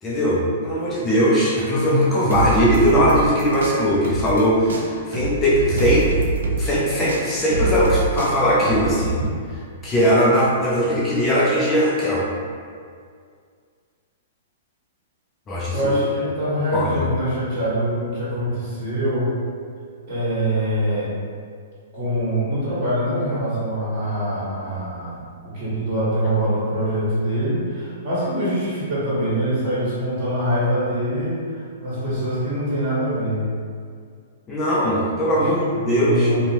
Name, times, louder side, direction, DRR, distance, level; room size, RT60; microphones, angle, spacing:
voice 1, 0.0-6.1 6.6-9.2 9.8-12.3 15.5-16.0 16.7-17.0 26.2-26.3 34.5-36.3, equal, 15° left, -6 dB, 0.3 m, -19 dB
sound 1, 2.3-4.4 4.7-9.3, right 3 dB, 80° right, 0.3 m, -25 dB
voice 2, 15.7-19.3 20.1-21.1 21.9-33.4 35.2-35.5 35.7-36.4, equal, 45° right, -10 dB, 1.4 m, -24 dB
2.7 x 2.0 x 2.8 m, 2.1 s
hypercardioid pair, 155°, 0 cm